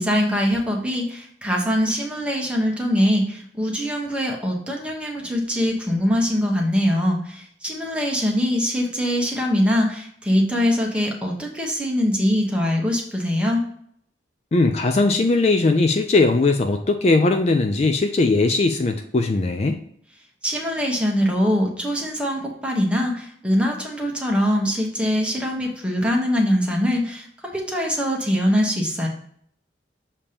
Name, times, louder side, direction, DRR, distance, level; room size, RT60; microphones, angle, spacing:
voice 1, 0.0-13.6 20.4-29.1, equal, 5° right, -1 dB, 1.1 m, -22 dB
voice 2, 14.5-19.8, left 3 dB, 35° left, 5 dB, 0.4 m, -19 dB
7.0 x 2.9 x 5.0 m, 0.66 s
head